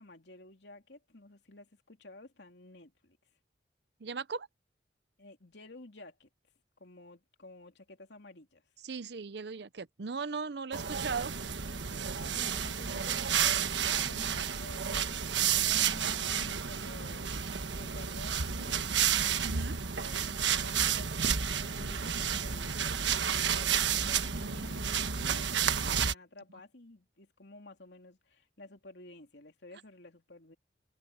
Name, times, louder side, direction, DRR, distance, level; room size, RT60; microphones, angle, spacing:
voice 1, 0.0-3.2 5.2-6.3 6.8-8.6 12.2-15.2 15.5-19.0 20.0-30.6, left 2 dB, 70° left, 3.0 m, -52 dB
voice 2, 4.0-4.5 8.8-11.3 19.4-19.8, right 5 dB, 65° right, 0.6 m, -37 dB
sound 1, 10.7-26.1, right 8 dB, 80° right, 1.3 m, -31 dB
head